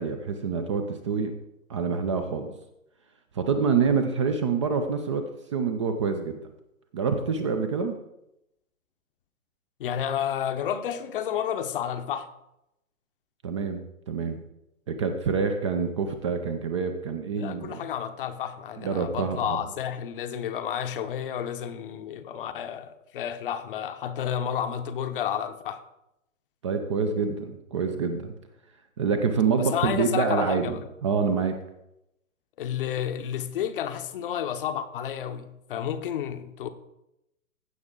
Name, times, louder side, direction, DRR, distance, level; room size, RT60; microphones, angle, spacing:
voice 1, 0.0-1.3 1.7-2.5 3.3-6.4 6.9-8.0 13.4-14.4 14.9-17.8 18.8-19.6 26.6-28.3 29.0-31.6, right 5 dB, 20° right, 0.5 m, -26 dB
voice 2, 9.8-12.3 17.3-25.8 29.5-30.8 32.6-36.7, left 9 dB, 40° left, 0.8 m, -31 dB
15.5 x 5.8 x 3.7 m
figure-of-eight pair, 130°, 42 cm